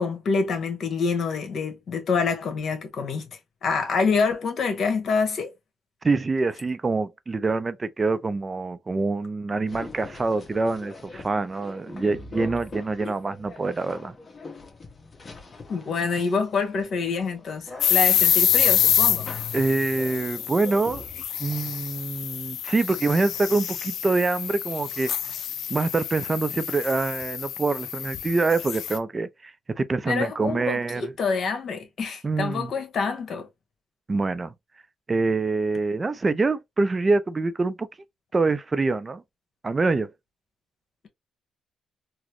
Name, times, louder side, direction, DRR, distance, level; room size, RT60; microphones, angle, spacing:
voice 1, 0.0-3.3 3.6-5.5 15.7-19.3 30.1-33.5, left 4 dB, 60° left, 1.3 m, -26 dB
voice 2, 6.0-14.1 17.8-17.9 19.5-21.1 21.4-25.1 25.7-31.1 32.2-32.7 34.1-34.5 35.1-37.9 38.3-39.2 39.6-40.1, right 3 dB, 30° right, 0.4 m, -25 dB
sound 1, 9.7-21.3, left 3 dB, 35° left, 1.1 m, -43 dB
sound 2, 17.8-29.0, left 10 dB, 75° left, 0.5 m, -26 dB
4.0 x 2.1 x 3.0 m
cardioid pair, 90°, 0 cm